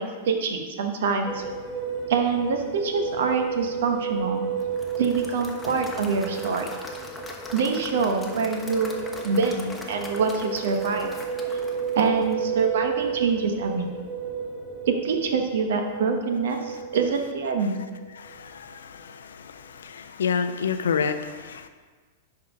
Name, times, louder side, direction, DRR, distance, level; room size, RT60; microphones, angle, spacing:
voice 1, 0.0-1.4 2.1-4.4 5.0-6.8 7.5-9.0 9.2-11.1 11.9-13.9 14.9-17.8, right 5 dB, 65° right, 5 dB, 1.0 m, -25 dB
sound 1, 1.3-18.5, right 6 dB, 15° right, 1.6 m, -32 dB
Applause / Crowd, 4.6-12.8, left 2 dB, 10° left, 1.1 m, -42 dB
voice 2, 18.2-21.7, left 6 dB, 70° left, 9 dB, 0.5 m, -29 dB
10.5 x 3.8 x 4.9 m, 1.4 s
figure-of-eight pair, 100°, 0 cm